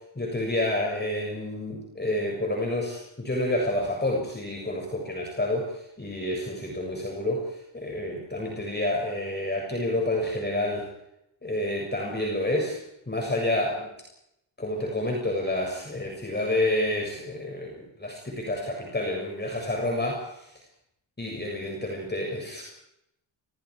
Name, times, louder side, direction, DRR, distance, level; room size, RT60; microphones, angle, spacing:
voice 1, 0.2-10.9 11.4-12.8 13.1-13.9 14.6-20.5 21.2-22.6, left 1 dB, 20° left, 0 dB, 7.2 m, -29 dB
29.0 x 23.5 x 5.0 m, 0.80 s
cardioid pair, 85°, 48 cm